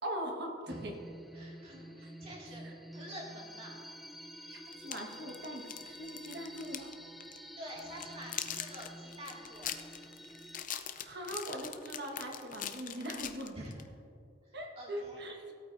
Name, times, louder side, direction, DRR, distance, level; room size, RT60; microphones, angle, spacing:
voice 1, 0.0-1.0 2.6-2.7 4.5-6.9 11.0-13.6 14.5-15.5, right 1 dB, 60° right, 1 dB, 1.5 m, -41 dB
sound 1, 0.7-10.6, equal, ahead, 0.5 m, -49 dB
voice 2, 1.3-2.7 2.9-3.7 7.6-9.7 13.5-13.9 14.5-15.2, equal, 35° right, -3 dB, 2.2 m, -47 dB
sound 2, 4.7-6.9 7.2-7.4 7.8-13.9, left 10 dB, 45° left, 0.6 m, -42 dB
17.5 x 8.7 x 2.6 m, 2.5 s
head